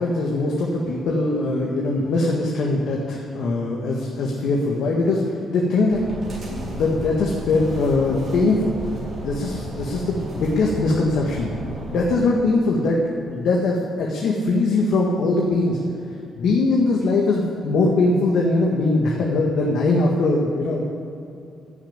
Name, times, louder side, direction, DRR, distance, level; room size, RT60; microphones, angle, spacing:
voice 1, 0.0-8.9 9.2-15.8 16.4-20.9, left 2 dB, 70° left, -2 dB, 1.7 m, -21 dB
sound 1, 5.9-12.1, right 2 dB, 35° right, 4.4 m, -34 dB
16.0 x 7.2 x 8.9 m, 2.7 s
cardioid pair, 155°, 0 cm